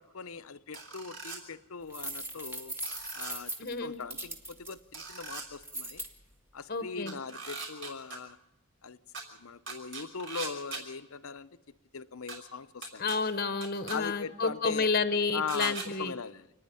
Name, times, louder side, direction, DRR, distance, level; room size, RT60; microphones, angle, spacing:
voice 1, 0.0-2.7 3.1-3.5 3.8-6.0 6.5-8.4 8.8-9.0 9.3-11.5 11.9-13.1 13.9-14.9 15.3-16.5, left 5 dB, 70° left, 13 dB, 0.8 m, -40 dB
sound 1, 0.7-1.4 2.8-3.3 4.9-5.4 7.1-8.2 9.1-9.2 9.7-10.8 12.3-12.4 12.8-13.2 13.6-14.0 15.5-15.9, right 4 dB, 55° right, 5.9 m, -40 dB
sound 2, 1.9-4.7 5.6-6.1, right 1 dB, 10° right, 1.9 m, -39 dB
voice 2, 3.6-4.0 6.7-7.1 13.0-16.1, left 4 dB, 40° left, 11 dB, 1.0 m, -30 dB
28.5 x 10.0 x 9.9 m, 1.0 s
head